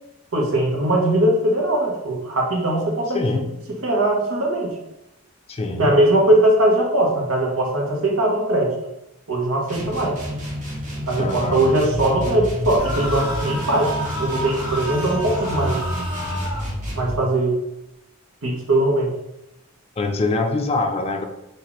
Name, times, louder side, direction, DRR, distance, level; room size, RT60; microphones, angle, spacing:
voice 1, 0.3-3.2 3.8-4.7 5.8-8.7 9.3-10.2 11.1-13.9 14.2-15.8 16.9-17.6 18.4-19.1, right 1 dB, 80° right, 0 dB, 1.1 m, -20 dB
voice 2, 3.1-3.5 5.5-6.0 11.2-11.7 20.0-21.2, left 3 dB, 30° left, 5 dB, 0.4 m, -24 dB
sound 1, 9.7-17.2, equal, 35° right, 1.1 m, -29 dB
sound 2, 12.7-16.7, equal, 20° right, 1.5 m, -30 dB
4.5 x 2.6 x 4.1 m, 0.89 s
head